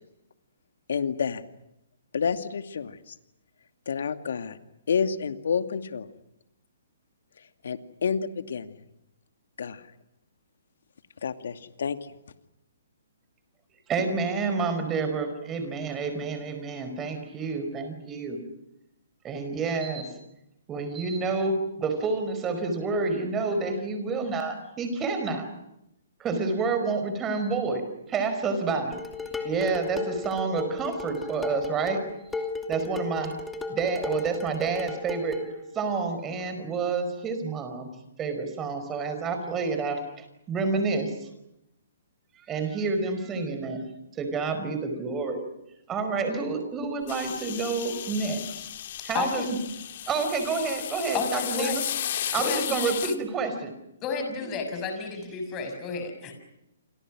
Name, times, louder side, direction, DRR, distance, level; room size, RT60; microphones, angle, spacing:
voice 1, 0.9-1.4 2.1-3.2 3.9-4.6 4.9-6.1 7.6-8.8 9.6-9.8 11.2-12.1, left 6 dB, 70° left, 8 dB, 2.5 m, -29 dB
voice 2, 13.9-18.4 19.2-20.2 20.7-25.5 26.2-33.4 33.7-35.5 35.7-37.9 38.2-41.3 42.3-45.4 45.9-48.7 49.0-49.4 50.1-51.8 52.2-53.7, right 4 dB, 15° right, 7 dB, 5.0 m, -29 dB
Dishes pots and pans, 28.9-35.5, left 3 dB, 5° left, 2.6 m, -35 dB
sound 1, 47.1-53.2, left 11 dB, 50° left, 2.0 m, -34 dB
voice 3, 49.1-49.5 51.1-51.8 52.4-52.8 54.0-56.3, left 5 dB, 20° left, 5 dB, 6.4 m, -31 dB
29.5 x 27.0 x 6.3 m, 0.83 s
hypercardioid pair, 160°, 0 cm